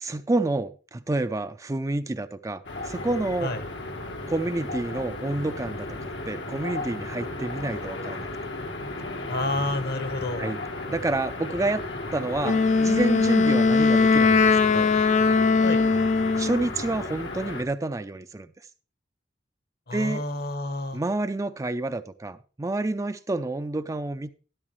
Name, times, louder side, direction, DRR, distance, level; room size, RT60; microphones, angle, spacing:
voice 1, 0.0-3.5 4.3-8.3 10.4-10.6 10.9-11.8 12.1-14.9 16.4-18.5 19.9-20.2 20.9-24.3, right 2 dB, 20° right, 10 dB, 0.4 m, -29 dB
sound 1, 2.6-17.6, left 2 dB, 80° left, 1.5 m, -35 dB
voice 2, 9.3-10.6 15.6-15.8 19.9-21.0, left 2 dB, 60° left, 9 dB, 1.3 m, -29 dB
Wind instrument woodwind instrument, 12.4-16.6, left 4 dB, 40° left, 0.5 m, -20 dB
12.5 x 11.0 x 3.1 m, 0.37 s
head